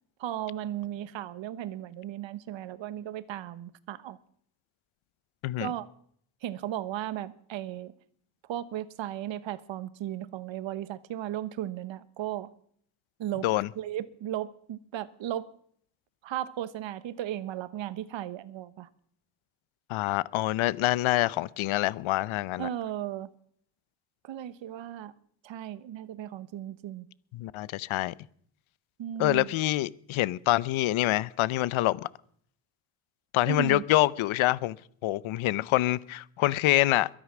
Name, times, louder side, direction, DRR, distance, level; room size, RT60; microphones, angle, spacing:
voice 1, 0.2-4.2 5.6-5.9 6.4-7.9 8.5-12.5 13.2-13.5 13.8-15.5 16.2-18.9 22.6-23.3 24.2-25.1 25.4-27.1 29.0-29.5 33.5-33.8, right 12 dB, 65° right, 1.2 m, -35 dB
voice 2, 19.9-22.7 27.3-28.1 29.2-32.1 33.3-34.7 35.0-37.1, left 16 dB, 80° left, 0.8 m, -26 dB
22.0 x 10.5 x 6.1 m
cardioid pair, 115°, 47 cm